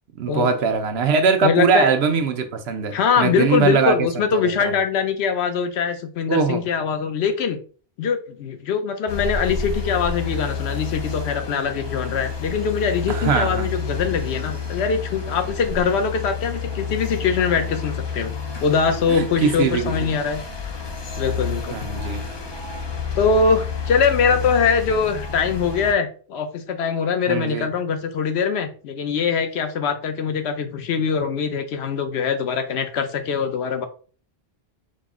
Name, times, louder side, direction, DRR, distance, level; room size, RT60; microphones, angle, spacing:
voice 1, 0.2-4.7 6.3-6.6 13.1-13.7 19.1-20.1 21.7-22.2 27.3-27.7, right 5 dB, 80° right, 0.9 m, -21 dB
voice 2, 1.4-1.9 2.9-7.6 8.0-18.3 18.6-20.4 21.2-21.7 23.2-33.9, left 6 dB, 85° left, 0.9 m, -22 dB
sound 1, 9.1-25.9, left 5 dB, 40° left, 0.3 m, -30 dB
5.2 x 2.0 x 3.6 m
omnidirectional pair, 1.1 m